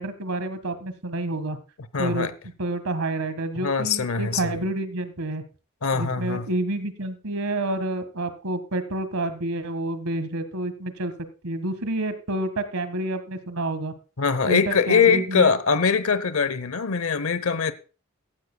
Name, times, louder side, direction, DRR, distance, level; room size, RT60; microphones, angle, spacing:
voice 1, 0.0-1.6 2.0-2.3 2.6-5.4 5.9-13.9 14.5-15.5, right 2 dB, 90° right, 1.7 m, -29 dB
voice 2, 1.9-2.3 3.6-4.6 5.8-6.5 14.2-17.7, left 5 dB, 75° left, 0.8 m, -22 dB
16.0 x 13.0 x 2.3 m
head